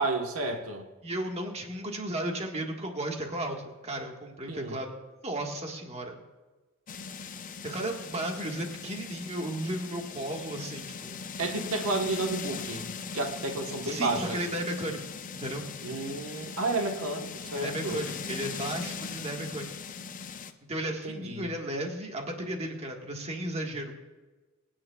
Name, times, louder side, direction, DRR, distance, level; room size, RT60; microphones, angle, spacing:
voice 1, 0.0-0.8 4.5-4.8 11.4-12.9 13.1-14.4 15.8-18.0 20.9-21.5, right 2 dB, 80° right, 3 dB, 1.3 m, -31 dB
voice 2, 1.0-4.9 5.2-6.2 7.6-11.2 13.8-15.0 15.3-15.7 17.5-19.7 20.7-23.9, right 1 dB, 30° right, 2 dB, 1.6 m, -34 dB
sound 1, 6.9-20.5, left 5 dB, 40° left, 0.7 m, -40 dB
25.0 x 9.7 x 2.4 m, 1.2 s
head